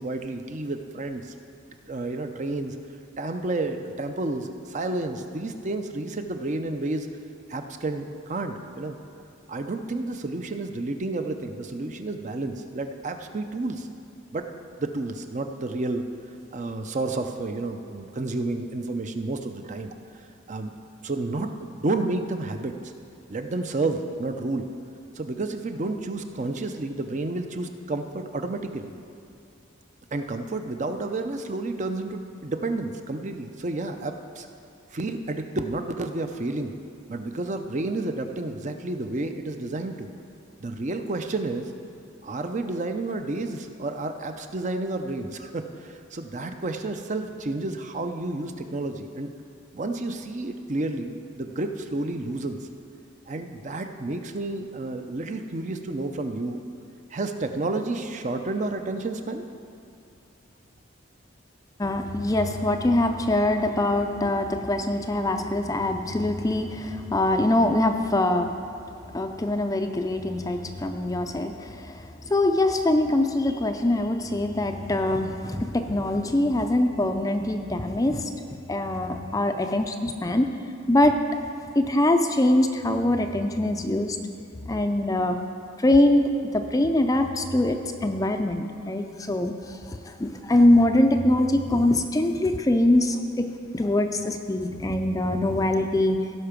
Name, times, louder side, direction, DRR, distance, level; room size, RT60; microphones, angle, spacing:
voice 1, 0.0-1.3 1.9-2.7 3.2-7.1 7.5-9.0 9.5-13.9 14.3-14.5 14.8-16.0 16.5-19.9 20.5-20.7 21.0-21.5 21.8-22.7 23.3-24.7 25.2-28.9 30.1-34.5 34.9-36.7 37.1-40.1 40.6-41.7 42.2-49.3 49.7-52.6 53.3-56.6 57.1-59.4, right 2 dB, 35° right, 6 dB, 0.5 m, -30 dB
voice 2, 61.8-68.6 69.1-78.3 78.7-80.5 80.9-81.2 81.8-84.2 84.7-85.4 85.8-93.5 93.7-96.2, left 1 dB, 15° left, 6 dB, 0.4 m, -23 dB
16.5 x 5.8 x 5.1 m, 2.5 s
head